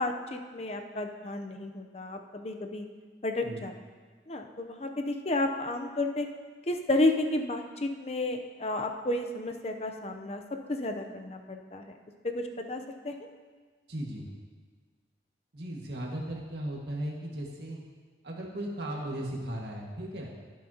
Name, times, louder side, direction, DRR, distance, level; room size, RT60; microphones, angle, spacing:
voice 1, 0.0-2.8 3.2-3.7 4.3-6.3 6.7-10.4 10.7-11.9 12.2-13.1, left 2 dB, 35° left, 5 dB, 0.7 m, -32 dB
voice 2, 13.9-14.3 15.5-17.8 18.2-20.3, right 1 dB, 70° right, -2 dB, 1.8 m, -36 dB
17.0 x 7.5 x 2.9 m, 1.5 s
head